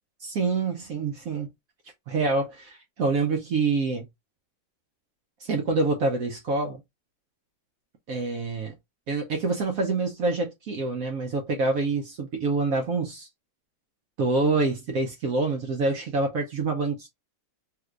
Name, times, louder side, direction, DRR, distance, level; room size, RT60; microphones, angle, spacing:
voice 1, 0.2-1.5 2.1-4.1 5.4-6.8 8.1-8.7 9.1-13.3 14.2-17.1, right 3 dB, 65° right, 0.9 m, -26 dB
3.3 x 3.1 x 2.4 m
omnidirectional pair, 2.0 m